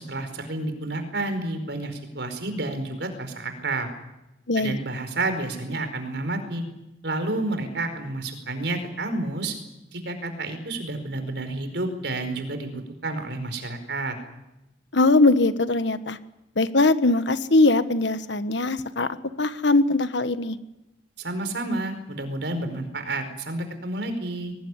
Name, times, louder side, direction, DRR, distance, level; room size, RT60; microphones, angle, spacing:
voice 1, 0.0-3.9 4.5-6.6 7.0-9.5 9.9-14.2 21.2-24.5, right 2 dB, 65° right, 8 dB, 4.8 m, -30 dB
voice 2, 14.9-16.2 16.6-20.6, left 2 dB, 75° left, 11 dB, 1.4 m, -21 dB
22.5 x 19.5 x 9.8 m, 0.92 s
head